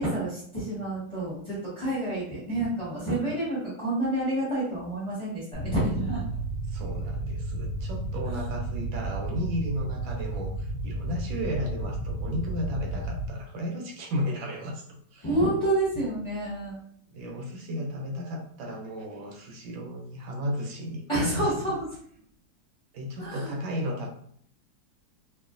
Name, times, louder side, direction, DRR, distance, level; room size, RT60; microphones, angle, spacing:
voice 1, 0.0-6.2 8.3-8.4 15.2-16.8 21.1-21.8 23.2-23.5, right 1 dB, 20° left, -8 dB, 0.9 m, -29 dB
sound 1, 5.5-13.3, right 2 dB, 70° left, 0.7 m, -32 dB
voice 2, 6.7-14.9 15.1-15.3 17.1-21.4 22.9-24.1, equal, 80° right, 1 dB, 1.4 m, -34 dB
2.9 x 2.6 x 2.4 m, 0.63 s
omnidirectional pair, 2.1 m